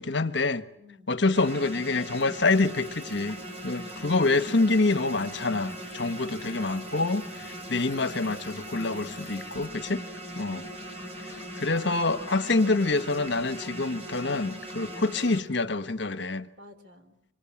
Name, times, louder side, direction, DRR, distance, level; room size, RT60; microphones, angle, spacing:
voice 1, 0.0-0.6 1.1-10.0 10.4-10.7 11.2-16.5, left 3 dB, 60° left, 1.3 m, -26 dB
voice 2, 0.7-1.3 4.4-4.7 16.6-17.3, left 2 dB, 60° right, 4.1 m, -53 dB
sound 1, 1.3-15.4, right 1 dB, 35° right, 4.0 m, -40 dB
Water tap faucet / Sink (filling or washing) / Trickle dribble, 2.2-16.3, left 2 dB, 10° right, 6.9 m, -55 dB
26.0 x 25.5 x 8.7 m
head